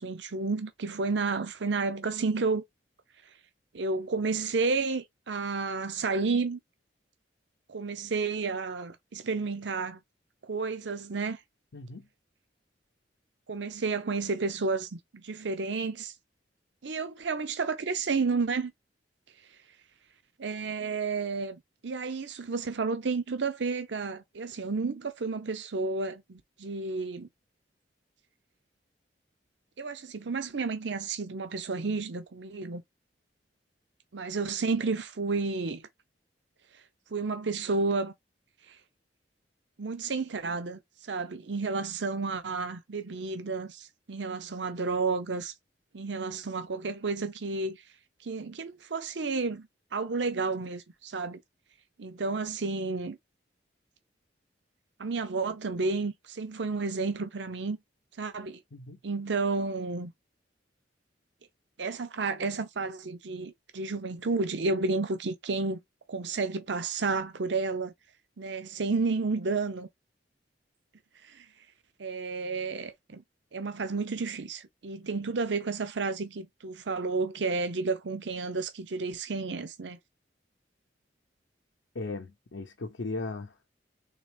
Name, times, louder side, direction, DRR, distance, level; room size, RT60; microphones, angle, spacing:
voice 1, 0.0-2.6 3.7-6.6 7.7-10.0 10.4-11.4 13.5-16.1 16.8-18.7 20.4-27.3 29.8-32.8 34.1-35.9 37.1-38.1 38.7-38.8 39.8-45.5 45.9-47.8 48.2-49.7 49.9-51.4 52.0-53.2 55.0-57.8 58.2-58.6 59.0-60.1 61.8-65.8 66.1-67.9 68.4-69.9 71.2-71.4 72.0-73.2 73.5-80.0, right 4 dB, 75° right, 0.7 m, -31 dB
voice 2, 11.7-12.1 58.7-59.0 81.9-83.7, left 3 dB, 75° left, 0.7 m, -37 dB
4.0 x 3.4 x 3.3 m
head